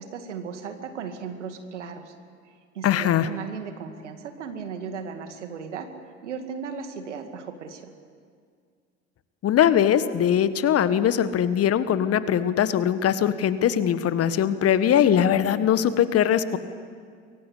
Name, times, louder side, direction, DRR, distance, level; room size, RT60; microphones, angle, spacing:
voice 1, 0.0-2.1 2.7-7.9, right 6 dB, 80° right, 7 dB, 2.2 m, -36 dB
voice 2, 2.8-3.3 9.4-16.6, left 9 dB, 40° left, 13 dB, 1.5 m, -21 dB
24.0 x 23.0 x 8.5 m, 2.1 s
figure-of-eight pair, 60°, 35 cm